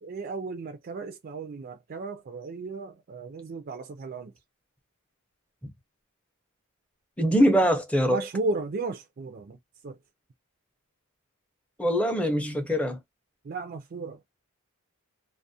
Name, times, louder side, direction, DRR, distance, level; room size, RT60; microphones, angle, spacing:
voice 1, 0.0-4.3 8.1-9.6 9.8-10.0 13.4-14.2, right 3 dB, 45° right, 0.4 m, -34 dB
voice 2, 7.2-8.2 11.8-13.0, equal, 5° left, 0.5 m, -23 dB
2.3 x 2.0 x 2.6 m
head